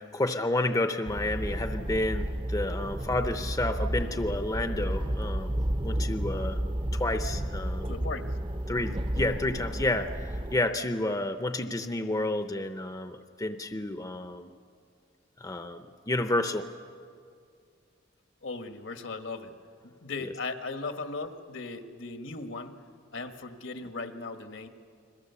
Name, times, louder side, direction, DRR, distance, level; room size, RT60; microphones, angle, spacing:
voice 1, 0.0-5.6 5.8-6.6 6.9-7.9 8.7-14.5 15.4-16.7 20.2-20.3, left 2 dB, 20° left, 8 dB, 0.7 m, -30 dB
sound 1, 1.0-10.6, right 1 dB, 25° right, 0.7 m, -32 dB
voice 2, 7.8-8.3 18.4-19.5 19.8-22.8 23.1-24.7, left 3 dB, 75° left, 7 dB, 1.5 m, -37 dB
29.5 x 22.0 x 7.0 m, 2.3 s
head